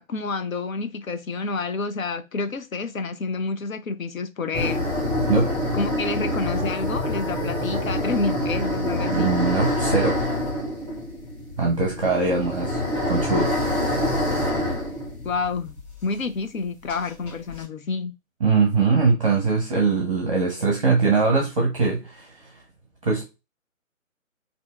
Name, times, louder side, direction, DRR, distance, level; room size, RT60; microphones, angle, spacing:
voice 1, 0.0-4.9 5.7-9.3 15.2-18.1, left 4 dB, 75° left, 0.6 m, -29 dB
sound 1, 4.5-16.0 16.2-16.3 16.9-17.6, left 1 dB, 10° left, 2.0 m, -26 dB
voice 2, 9.1-10.2 11.6-12.8 13.1-13.5 18.4-22.5 23.0-23.2, right 4 dB, 25° right, 0.7 m, -22 dB
4.1 x 2.7 x 2.2 m
figure-of-eight pair, 145°, 41 cm